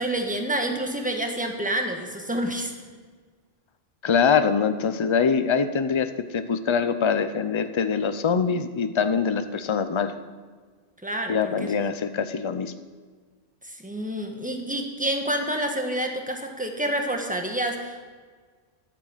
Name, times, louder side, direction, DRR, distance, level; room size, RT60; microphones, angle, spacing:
voice 1, 0.0-2.7 11.0-11.8 13.6-18.1, right 1 dB, 5° right, 3 dB, 1.4 m, -28 dB
voice 2, 4.0-10.1 11.3-12.7, left 6 dB, 30° left, 10 dB, 0.6 m, -24 dB
11.5 x 9.0 x 7.3 m, 1.5 s
omnidirectional pair, 1.2 m